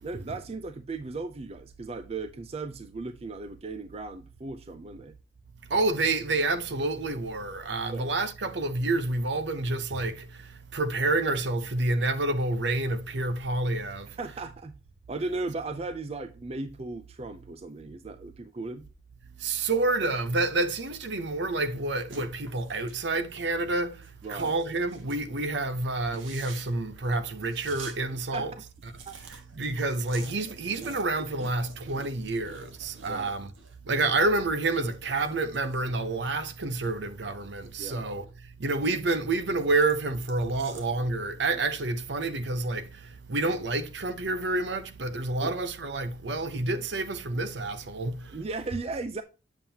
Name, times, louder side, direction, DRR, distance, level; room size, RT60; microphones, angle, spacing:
voice 1, 0.0-5.1 7.9-8.1 14.1-14.8 15.1-18.8 24.2-24.5 28.3-28.5 29.1-29.2 33.1-33.3 37.8-38.0 41.0-41.1 41.5-41.6 45.4-45.5 48.3-49.2, right 3 dB, 30° right, 0.4 m, -36 dB
voice 2, 5.7-14.2 19.4-28.5 29.6-33.5 33.8-48.4, right 2 dB, 60° right, 0.7 m, -29 dB
sound 1, 22.1-23.0 23.3-23.5 23.9-25.3 25.6-25.7 26.0-28.0 28.3-28.4 28.6-33.7 34.1-37.0 37.3-38.3 38.7-41.1, right 4 dB, 90° right, 1.5 m, -49 dB
7.4 x 7.1 x 2.8 m
head